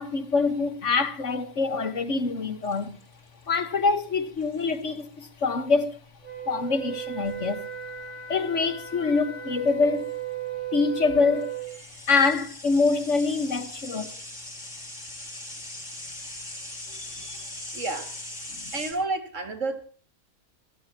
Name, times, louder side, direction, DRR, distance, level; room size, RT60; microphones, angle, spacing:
voice 1, 0.0-3.0 3.5-6.0 6.5-7.7 8.3-10.1 10.7-11.6 12.1-14.1 16.9-17.5 18.5-18.6, left 4 dB, 55° left, 1.7 m, -25 dB
sound 1, 2.6-3.4 4.4-4.8 7.2-7.5 9.7-9.8 10.0-10.1 11.4-18.9, left 1 dB, 70° left, 7.0 m, -40 dB
Wind instrument woodwind instrument, 6.2-11.7, right 10 dB, 20° left, 8.0 m, -35 dB
voice 2, 17.7-18.2 18.7-19.8, right 3 dB, 55° right, 2.6 m, -30 dB
26.0 x 15.5 x 2.9 m
omnidirectional pair, 1.5 m